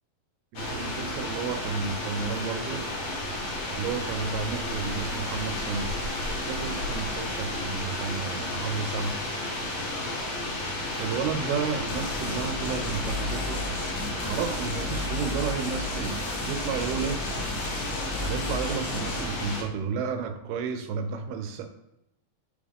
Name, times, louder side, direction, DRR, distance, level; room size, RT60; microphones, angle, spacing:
sound 1, 0.5-19.6, left 1 dB, 70° left, 1.1 m, -32 dB
voice 1, 0.5-2.9 3.7-5.9 6.3-9.1 11.0-13.6 14.2-17.2 18.2-21.7, right 6 dB, 85° right, 7 dB, 2.8 m, -32 dB
sound 2, 11.9-19.3, left 2 dB, 90° left, 3.4 m, -34 dB
8.8 x 3.6 x 3.5 m, 0.85 s
omnidirectional pair, 4.4 m